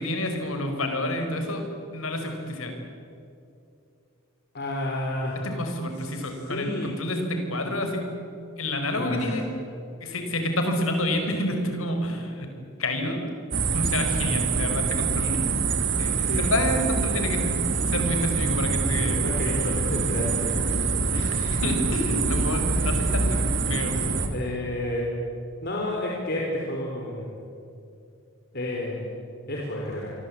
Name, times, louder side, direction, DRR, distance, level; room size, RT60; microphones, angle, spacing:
voice 1, 0.0-1.6 1.9-2.7 5.4-8.2 8.6-9.4 10.0-12.5 12.8-13.3 13.7-15.4 16.0-17.5 17.9-19.2 21.1-24.0, left 1 dB, 80° left, 5 dB, 4.9 m, -28 dB
voice 2, 4.5-5.4 6.0-6.9 8.9-9.4 16.2-16.5 19.0-20.6 24.3-25.0 25.6-27.3 28.5-29.2 29.5-30.1, left 1 dB, 50° left, -2 dB, 4.2 m, -30 dB
sound 1, 13.5-24.3, right 4 dB, 60° right, 2.8 m, -25 dB
28.5 x 23.5 x 8.7 m, 2.6 s
head